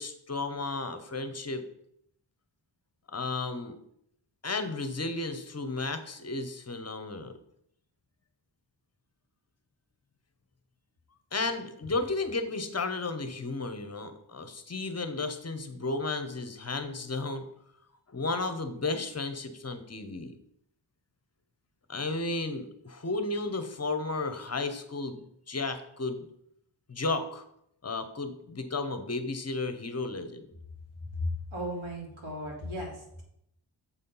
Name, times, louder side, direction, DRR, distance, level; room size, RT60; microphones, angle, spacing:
voice 1, 0.0-1.6 3.1-3.8 4.4-7.3 11.3-17.4 18.1-20.3 21.9-26.3 26.9-27.4 27.8-30.4, left 3 dB, 35° left, 9 dB, 0.7 m, -33 dB
voice 2, 31.2-33.2, left 1 dB, 80° right, -1 dB, 2.5 m, -35 dB
7.3 x 4.2 x 5.4 m, 0.74 s
wide cardioid pair, 125°, 48 cm